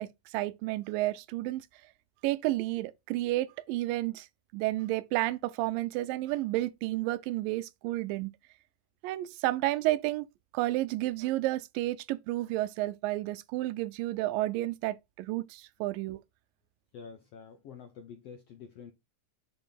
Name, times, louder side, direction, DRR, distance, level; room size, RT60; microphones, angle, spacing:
voice 1, 0.0-1.7 2.2-4.3 4.5-8.3 9.0-10.3 10.5-16.2, right 17 dB, 85° right, 2.2 m, -31 dB
voice 2, 16.9-18.9, left 6 dB, 75° left, 1.4 m, -47 dB
6.7 x 5.3 x 3.9 m
omnidirectional pair, 3.9 m